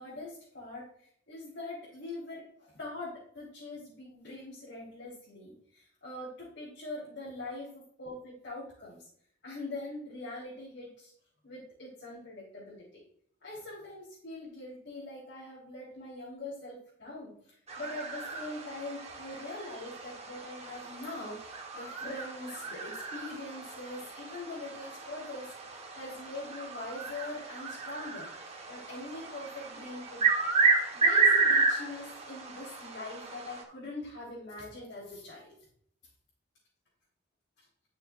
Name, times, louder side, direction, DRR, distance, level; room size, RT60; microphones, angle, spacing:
voice 1, 0.0-7.6 8.0-9.0 9.4-11.1 11.4-13.0 13.4-25.5 25.9-30.5 30.8-35.5, left 2 dB, 65° left, -8 dB, 3.5 m, -43 dB
sound 1, 17.7-33.6, right 4 dB, 35° right, 1.2 m, -32 dB
11.5 x 6.5 x 2.4 m, 0.63 s
head